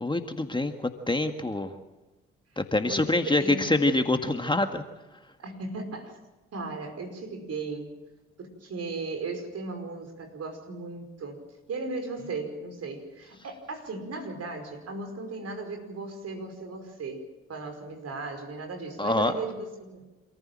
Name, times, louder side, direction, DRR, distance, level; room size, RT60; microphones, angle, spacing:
voice 1, 0.0-1.7 2.6-4.8 19.0-19.3, left 2 dB, 15° left, 6 dB, 1.8 m, -25 dB
voice 2, 2.8-3.9 5.4-6.1 6.5-7.9 8.4-11.4 11.7-20.1, right 3 dB, 55° right, 5 dB, 5.2 m, -37 dB
27.5 x 14.5 x 7.6 m, 1.1 s
hypercardioid pair, 50°, 30 cm